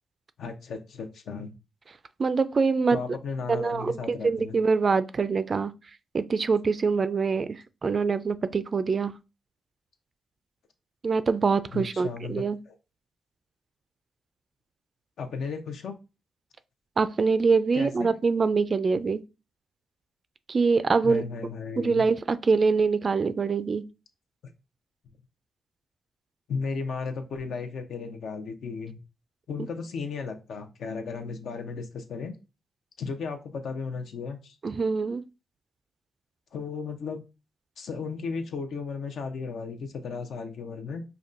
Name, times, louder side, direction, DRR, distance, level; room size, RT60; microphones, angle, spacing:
voice 1, 0.4-1.6 2.9-4.6 11.7-12.7 15.2-16.0 17.7-18.1 21.0-22.0 26.5-29.0 29.5-32.3 33.0-34.6 36.5-37.2 37.8-41.0, left 5 dB, 75° left, 0.6 m, -35 dB
voice 2, 2.2-3.0 3.5-5.7 6.1-9.2 11.0-12.6 17.0-19.2 20.5-21.2 21.8-23.8 29.6-29.7 34.6-35.2, right 4 dB, 40° right, 0.3 m, -24 dB
5.1 x 2.2 x 2.5 m
cardioid pair, 85°, 0 cm